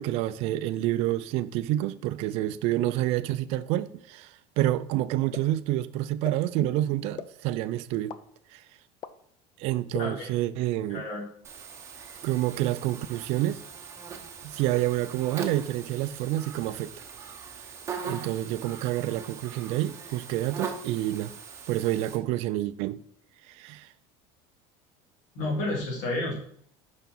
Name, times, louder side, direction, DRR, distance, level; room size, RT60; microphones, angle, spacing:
voice 1, 0.0-8.2 8.5-8.6 9.6-11.0 12.2-13.6 14.4-16.9 18.0-21.3 21.7-23.0 23.5-23.9, right 14 dB, 50° right, 0.4 m, -28 dB
sound 1, 5.3-5.4 6.2-6.3 7.2-7.3 8.1-8.2 9.0-9.1 9.9-10.0, left 9 dB, 30° left, 0.4 m, -35 dB
voice 2, 10.9-11.3 25.3-26.4, left 2 dB, 60° left, 2.8 m, -30 dB
Buzz, 11.4-22.2, right 6 dB, 20° right, 0.9 m, -40 dB
5.7 x 5.0 x 5.9 m
cardioid pair, 165°, 14 cm